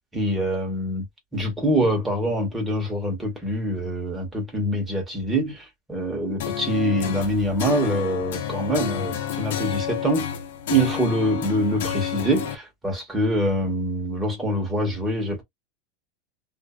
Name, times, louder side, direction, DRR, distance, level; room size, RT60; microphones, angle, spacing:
voice 1, 0.1-1.1 1.3-10.3 10.7-15.4, right 1 dB, 10° right, 1.5 m, -24 dB
sound 1, 6.4-12.5, left 10 dB, 75° left, 0.7 m, -30 dB
2.7 x 2.5 x 2.3 m
supercardioid pair, 135°, 0 cm